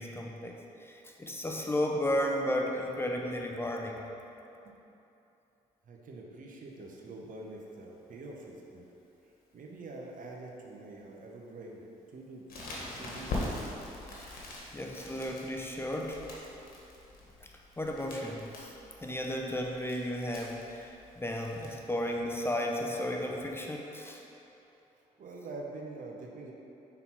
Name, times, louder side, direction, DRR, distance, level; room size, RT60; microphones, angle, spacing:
voice 1, 0.0-4.0 14.3-14.5 14.7-16.2 17.8-18.7 19.0-24.2, left 1 dB, 15° left, 0 dB, 0.7 m, -34 dB
voice 2, 5.8-8.8 9.2-11.8 12.1-12.5 13.0-13.7 24.9-26.5, right 2 dB, 60° right, -1 dB, 0.9 m, -45 dB
Crackle, 12.5-21.7, left 2 dB, 70° left, 1.3 m, -43 dB
5.6 x 4.0 x 4.5 m, 2.9 s
supercardioid pair, 65°, 16 cm